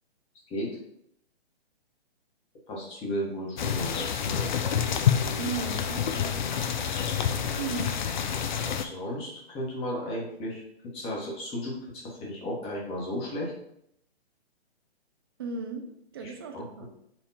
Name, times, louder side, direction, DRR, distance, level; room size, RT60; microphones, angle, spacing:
voice 1, 0.5-0.8 2.7-4.5 8.6-10.6 10.9-13.5 16.2-16.9, equal, 20° left, -3 dB, 1.3 m, -34 dB
sound 1, 3.6-8.8, left 8 dB, 45° left, 0.4 m, -28 dB
voice 2, 5.4-6.4 7.6-7.9 15.4-15.9 16.1-16.9, right 4 dB, 25° right, 4 dB, 0.4 m, -35 dB
4.4 x 2.8 x 4.1 m, 0.74 s
hypercardioid pair, 140°, 33 cm